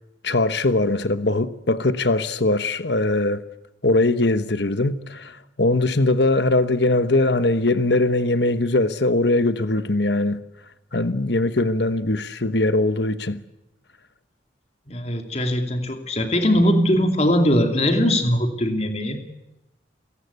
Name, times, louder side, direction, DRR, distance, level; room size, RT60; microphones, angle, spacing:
voice 1, 0.2-3.4 3.8-10.4 10.9-13.4, left 2 dB, 65° left, 1.2 m, -21 dB
voice 2, 14.9-19.2, equal, 35° left, 2.7 m, -20 dB
29.0 x 17.5 x 8.2 m
head